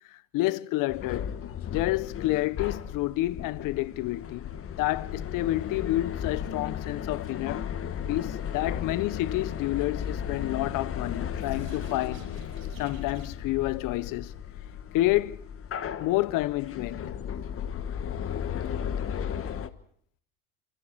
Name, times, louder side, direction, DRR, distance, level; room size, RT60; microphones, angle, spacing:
voice 1, 0.1-1.3 1.7-4.4 4.8-7.7 8.1-12.3 12.8-14.3 14.9-15.4 16.0-17.1, left 17 dB, 60° left, 1.0 m, -29 dB
sound 1, 0.9-19.7, left 8 dB, 35° left, 1.5 m, -35 dB
sound 2, 10.6-13.6, right 8 dB, 80° right, 7.5 m, -53 dB
28.0 x 24.5 x 4.6 m
supercardioid pair, 90°, 37 cm